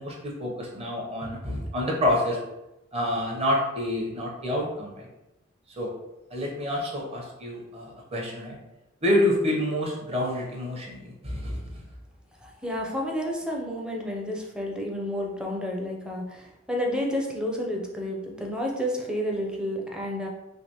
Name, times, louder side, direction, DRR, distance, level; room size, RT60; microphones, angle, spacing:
voice 1, 0.0-2.4 2.9-5.1 5.8-5.9 6.3-8.6 9.0-11.8, left 1 dB, 30° right, -2 dB, 0.8 m, -28 dB
voice 2, 12.4-20.3, equal, 5° right, -1 dB, 0.5 m, -30 dB
3.3 x 2.9 x 2.9 m, 0.97 s
head